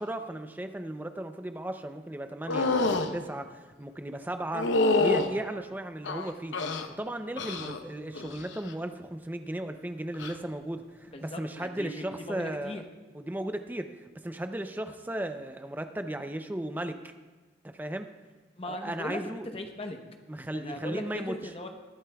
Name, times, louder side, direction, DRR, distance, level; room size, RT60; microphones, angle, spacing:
voice 1, 0.0-4.7 5.0-6.6 7.0-12.8 13.1-17.0 17.6-18.1 18.7-19.5 20.3-21.4, right 1 dB, 10° right, 7 dB, 0.5 m, -35 dB
sound 1, 2.5-3.1 4.5-5.3 6.0-6.9 7.4-7.8 8.1-8.6 10.1-10.3, left 3 dB, 85° left, 0.7 m, -27 dB
voice 2, 11.1-12.8 18.6-20.0 20.5-21.7, left 1 dB, 30° left, 4 dB, 0.9 m, -38 dB
20.5 x 11.0 x 2.3 m, 1.3 s
head